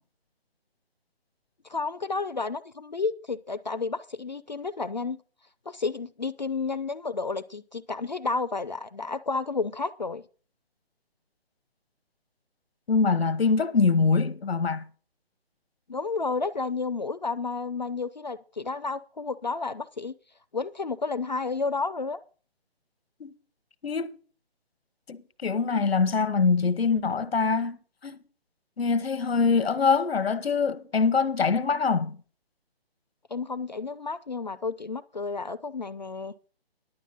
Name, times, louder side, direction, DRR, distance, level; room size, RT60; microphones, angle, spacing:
voice 1, 1.7-5.2 5.7-10.2 15.9-20.1 20.5-22.2 33.3-36.3, left 4 dB, 45° left, 0.5 m, -31 dB
voice 2, 12.9-14.8 23.2-23.3 23.8-24.1 25.1-27.8 28.0-28.2 28.8-32.2, left 5 dB, 75° left, 1.0 m, -24 dB
11.0 x 7.8 x 5.3 m
hypercardioid pair, 175°, 31 cm